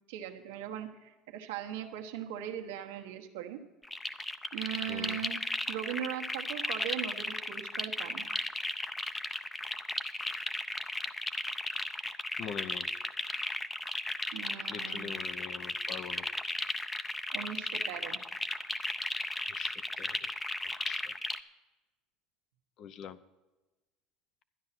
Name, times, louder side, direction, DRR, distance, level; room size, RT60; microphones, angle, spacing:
voice 1, 0.1-3.6 4.5-5.4 5.7-8.2 14.3-15.2 17.3-18.2, right 10 dB, 90° right, 4 dB, 1.2 m, -39 dB
sound 1, 3.8-21.4, left 2 dB, 15° left, 0.6 m, -35 dB
voice 2, 4.9-5.2 12.4-12.9 14.7-16.3 19.0-20.3 20.8-21.2 22.8-23.2, left 8 dB, 55° left, 13 dB, 0.7 m, -44 dB
12.0 x 9.6 x 5.9 m, 1.1 s
supercardioid pair, 105°, 0 cm